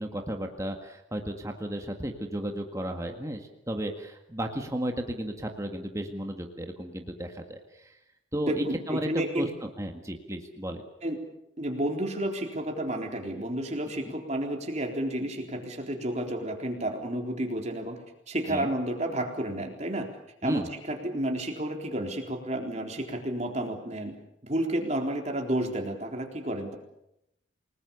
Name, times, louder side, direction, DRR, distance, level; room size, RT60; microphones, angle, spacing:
voice 1, 0.0-8.0 8.3-10.8 14.0-14.1 18.5-18.7 20.4-20.7, right 1 dB, 15° right, 4 dB, 1.9 m, -34 dB
voice 2, 8.3-9.5 11.0-11.2 11.6-18.0 18.3-20.1 20.4-24.1 24.4-26.8, right 1 dB, 35° right, 3 dB, 3.9 m, -31 dB
28.5 x 19.5 x 7.1 m, 0.82 s
head